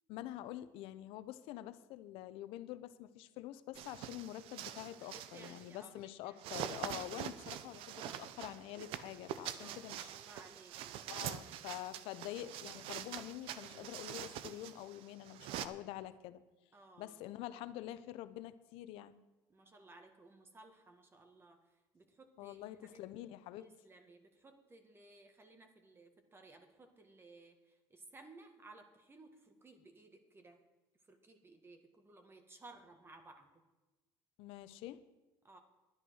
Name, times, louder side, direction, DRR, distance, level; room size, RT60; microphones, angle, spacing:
voice 1, 0.1-10.1 11.1-16.4 17.0-19.2 22.4-23.7 34.4-35.0, left 14 dB, 70° left, 14 dB, 0.8 m, -46 dB
sound 1, 3.7-5.8 6.4-15.7, right 11 dB, 70° right, 0.8 m, -45 dB
voice 2, 4.9-6.6 9.6-11.5 12.0-12.1 16.7-17.2 19.5-23.0 23.6-30.6 31.1-33.6 35.4-35.6, right 2 dB, 25° right, 6 dB, 1.9 m, -59 dB
11.0 x 10.0 x 6.4 m, 1.1 s
supercardioid pair, 90°, 10 cm